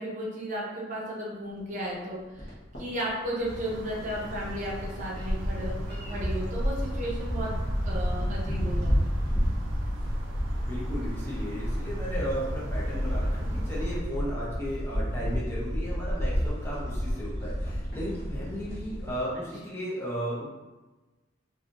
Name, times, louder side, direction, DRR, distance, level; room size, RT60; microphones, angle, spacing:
voice 1, 0.0-2.5 2.8-7.6 7.8-9.2 19.3-19.5, equal, 40° right, -5 dB, 0.7 m, -34 dB
sound 1, 1.6-1.7 2.4-2.5 2.7-2.8 3.1-19.2, equal, 50° left, 1.0 m, -30 dB
sound 2, 3.4-14.0, right 1 dB, 80° right, 0.4 m, -43 dB
voice 2, 10.6-20.4, equal, 10° left, -7 dB, 0.6 m, -35 dB
3.2 x 2.5 x 2.5 m, 1.2 s
head